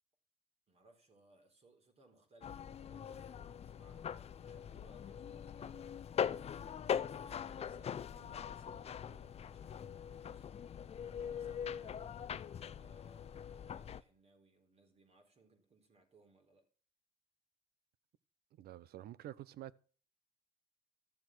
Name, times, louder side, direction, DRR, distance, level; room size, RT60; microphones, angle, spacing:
voice 1, 0.7-5.9 6.9-10.5 11.1-12.3 12.8-16.7, right 3 dB, 40° right, 4.1 m, -66 dB
sound 1, 2.4-14.0, left 8 dB, 40° left, 0.6 m, -42 dB
voice 2, 18.6-19.8, right 13 dB, 65° right, 0.8 m, -49 dB
13.0 x 7.2 x 6.1 m
cardioid pair, 110°, 17 cm